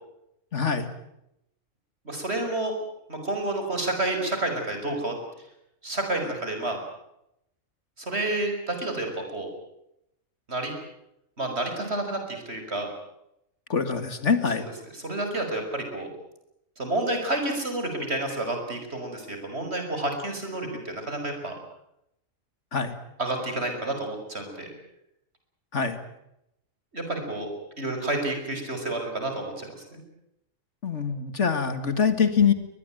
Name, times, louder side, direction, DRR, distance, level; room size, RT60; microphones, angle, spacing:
voice 1, 0.5-0.9 13.7-14.7 22.7-22.9 25.7-26.0 30.8-32.5, left 6 dB, 60° left, 10 dB, 2.3 m, -24 dB
voice 2, 2.0-2.7 3.1-5.1 5.8-6.8 8.0-9.5 10.5-10.7 11.4-12.9 14.9-16.1 16.8-21.5 23.2-24.7 26.9-27.5 27.8-30.0, right 2 dB, 50° right, 4 dB, 6.2 m, -30 dB
23.0 x 20.5 x 9.2 m, 0.82 s
omnidirectional pair, 1.4 m